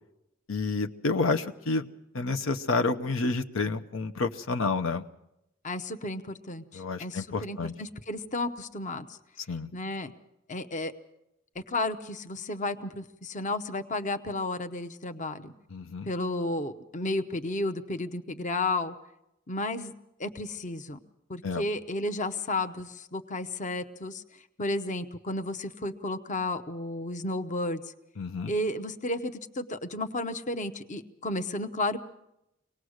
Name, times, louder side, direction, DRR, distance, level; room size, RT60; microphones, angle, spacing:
voice 1, 0.5-1.9 2.1-5.0 6.7-7.7 9.5-9.7 15.7-16.1 21.4-21.6 28.2-28.5, left 3 dB, 80° left, 6 dB, 0.8 m, -29 dB
voice 2, 5.6-9.2 9.7-10.1 10.5-10.9 11.7-15.5 16.0-18.9 19.5-19.9 20.2-21.0 21.3-24.2 24.6-27.8 28.5-32.0, left 2 dB, 40° left, 9 dB, 0.8 m, -32 dB
24.0 x 19.0 x 6.4 m, 0.88 s
head